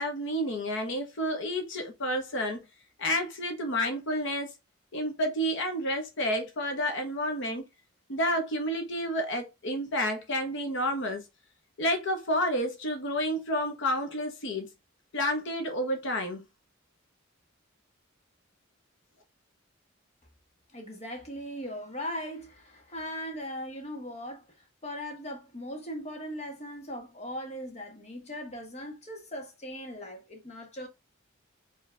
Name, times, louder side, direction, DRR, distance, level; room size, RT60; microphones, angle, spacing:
voice 1, 0.0-2.6 3.0-4.5 4.9-7.6 8.1-11.2 11.8-14.7 15.1-16.5, equal, 65° left, 1.1 m, -30 dB
voice 2, 20.7-24.4 24.8-30.9, equal, 35° left, 1.4 m, -39 dB
4.8 x 3.1 x 3.3 m
head